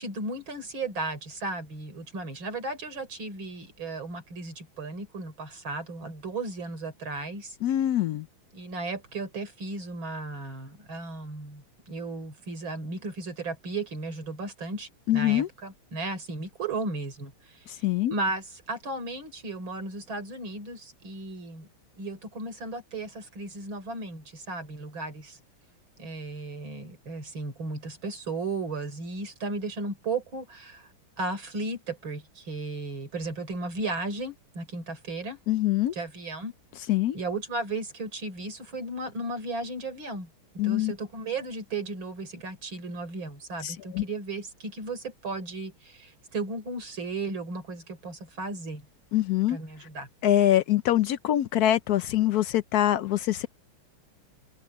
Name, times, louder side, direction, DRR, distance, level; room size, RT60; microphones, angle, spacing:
voice 1, 0.0-7.6 8.5-17.7 18.1-21.7 22.0-25.4 26.0-30.9 31.2-35.4 35.9-36.5 37.1-40.3 40.6-48.8 49.5-50.1, right 2 dB, 65° right, 4.8 m, -35 dB
voice 2, 7.6-8.3 15.1-15.5 17.7-18.1 35.5-35.9 36.9-37.2 40.6-40.9 43.6-44.0 49.1-49.6 50.2-53.5, left 13 dB, 85° left, 0.8 m, -24 dB
omnidirectional pair, 2.3 m